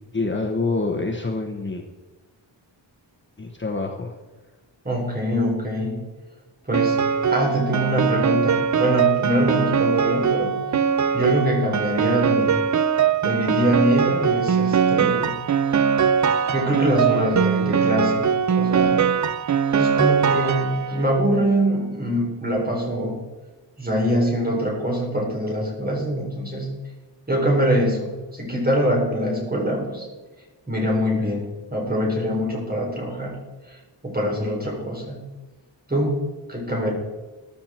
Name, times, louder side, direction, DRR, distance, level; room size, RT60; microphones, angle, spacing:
voice 1, 0.1-1.8 3.4-4.1 12.4-12.5, left 3 dB, 25° left, 1 dB, 1.1 m, -26 dB
voice 2, 4.8-6.0 6.6-7.0 7.3-10.6 11.1-12.6 13.2-15.3 16.5-19.0 19.7-23.2 23.8-26.7 27.3-30.1 30.7-33.4 33.7-33.8 34.0-35.2 35.9-36.2 36.5-36.9, equal, 20° right, -1 dB, 4.0 m, -23 dB
Piano, 6.7-21.1, right 7 dB, 40° right, 0.5 m, -21 dB
14.0 x 12.0 x 4.4 m, 1.2 s
wide cardioid pair, 150°, 46 cm